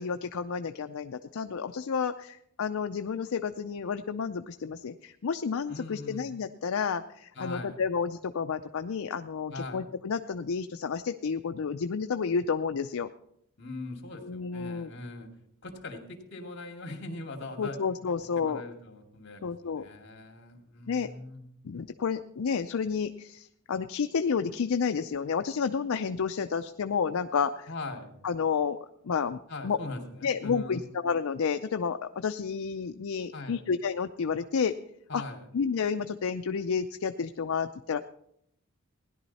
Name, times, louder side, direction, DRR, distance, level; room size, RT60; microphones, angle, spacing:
voice 1, 0.0-13.1 14.2-14.9 17.6-18.6 19.4-19.8 20.9-21.1 21.6-27.7 28.2-28.8 29.0-29.8 30.2-34.7 35.1-35.2 35.5-38.0, left 6 dB, 70° left, 8 dB, 0.4 m, -30 dB
voice 2, 5.7-6.3 7.3-7.8 9.5-9.8 13.6-15.3 15.6-17.8 18.1-21.4 27.7-28.1 29.5-30.9 33.3-33.6 35.1-35.5, left 2 dB, 55° left, 3 dB, 2.4 m, -41 dB
17.0 x 11.0 x 4.1 m, 0.74 s
head